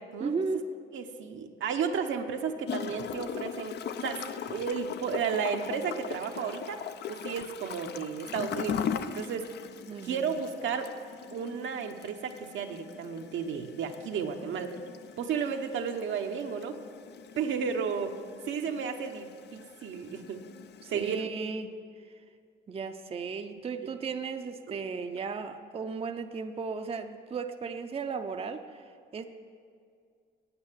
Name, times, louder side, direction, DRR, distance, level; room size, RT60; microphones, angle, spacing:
voice 1, 0.2-0.7 9.9-10.3 20.8-21.7 22.7-28.8 29.1-29.2, right 5 dB, 30° right, 7 dB, 0.5 m, -35 dB
voice 2, 0.9-3.8 4.0-6.8 7.1-9.5 10.0-10.9 11.3-14.8 15.2-16.8 17.4-18.2 18.5-20.4 20.9-21.3 23.8-23.9 24.7-24.8, right 6 dB, 75° right, 5 dB, 0.9 m, -33 dB
Gurgling / Toilet flush, 2.7-21.2, left 8 dB, 60° left, 0.5 m, -40 dB
8.8 x 8.7 x 7.3 m, 2.2 s
cardioid pair, 90°, 20 cm